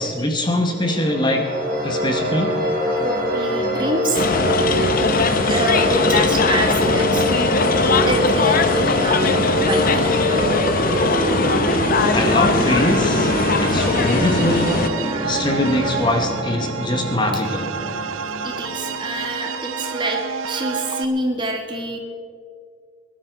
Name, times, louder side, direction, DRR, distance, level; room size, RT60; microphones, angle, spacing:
voice 1, 0.0-1.4 1.8-2.5 12.1-17.7, left 1 dB, 20° left, 3 dB, 1.2 m, -22 dB
sound 1, 0.7-19.4, equal, 40° right, 3.0 m, -24 dB
voice 2, 3.0-4.3 5.4-7.2 8.1-10.0 18.4-22.0, right 1 dB, 25° right, 3 dB, 1.7 m, -26 dB
sound 2, 4.1-14.9, left 3 dB, 45° left, 0.7 m, -20 dB
sound 3, 11.5-21.1, right 6 dB, 80° right, 0.7 m, -30 dB
20.5 x 11.5 x 4.7 m, 2.2 s
head